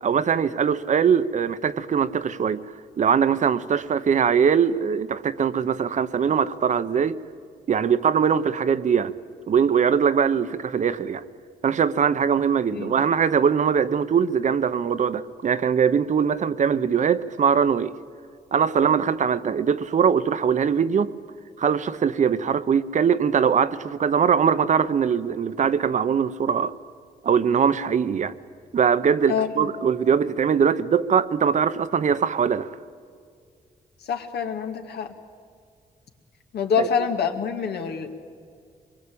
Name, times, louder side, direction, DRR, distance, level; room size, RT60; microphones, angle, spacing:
voice 1, 0.0-2.6 3.0-7.2 7.7-9.1 9.5-11.2 11.6-17.9 18.5-21.1 21.6-26.7 27.2-28.3 28.7-32.7 36.8-36.9, right 7 dB, 50° right, 0.9 m, -21 dB
voice 2, 29.3-29.7 34.1-35.1 36.5-38.1, left 6 dB, 80° left, 2.2 m, -26 dB
24.5 x 22.0 x 8.7 m
cardioid pair, 115°, 17 cm